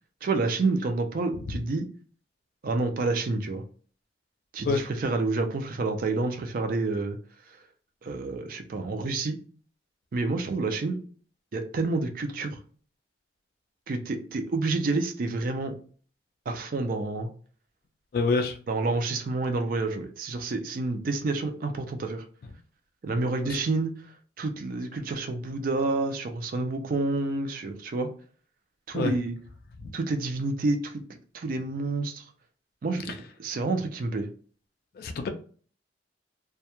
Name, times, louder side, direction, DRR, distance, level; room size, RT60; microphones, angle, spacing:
voice 1, 0.2-1.9 2.6-3.6 4.5-7.2 8.0-9.4 10.1-11.0 11.5-12.6 13.9-15.8 16.5-17.3 18.7-22.2 23.0-23.9 24.4-28.1 28.9-29.4 29.9-31.0 31.3-32.2 32.8-33.1 33.4-34.3, right 3 dB, 50° right, 6 dB, 0.3 m, -28 dB
voice 2, 18.1-18.6 23.4-23.6 28.9-29.1 29.8-29.9 35.0-35.3, left 4 dB, 55° left, 6 dB, 0.3 m, -26 dB
2.2 x 2.1 x 2.8 m, 0.43 s
head